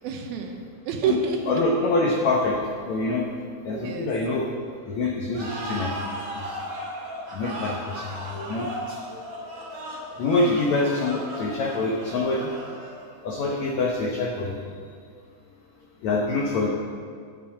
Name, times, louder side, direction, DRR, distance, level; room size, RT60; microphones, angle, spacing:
voice 1, 0.0-1.6 3.7-4.1, right 6 dB, 75° right, 4 dB, 2.5 m, -28 dB
voice 2, 1.5-2.6 2.9-3.3 3.6-4.5 4.9-6.6 7.3-9.0 10.2-12.5 13.2-14.6 16.0-16.7, left 2 dB, 80° left, -1 dB, 1.6 m, -25 dB
sound 1, 5.3-13.2, right 1 dB, 55° right, 3.8 m, -36 dB
9.4 x 7.5 x 8.7 m, 2.1 s
omnidirectional pair, 4.7 m